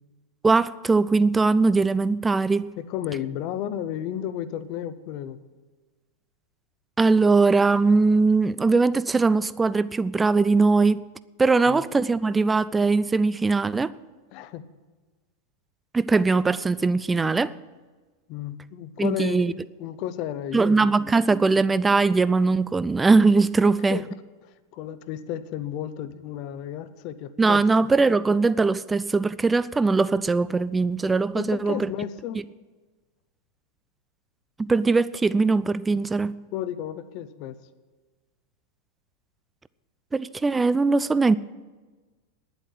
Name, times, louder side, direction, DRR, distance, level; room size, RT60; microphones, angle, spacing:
voice 1, 0.4-2.7 7.0-11.0 11.4-13.9 15.9-17.6 19.0-19.5 20.5-24.0 27.4-31.9 34.6-36.4 40.1-41.4, right 3 dB, 10° right, 0.4 m, -21 dB
voice 2, 2.8-5.4 11.7-11.8 14.3-14.7 18.3-21.2 23.9-24.0 24.4-27.6 31.3-32.4 36.5-37.6, left 10 dB, 40° left, 0.8 m, -33 dB
10.5 x 7.9 x 10.0 m
figure-of-eight pair, 90°, 0 cm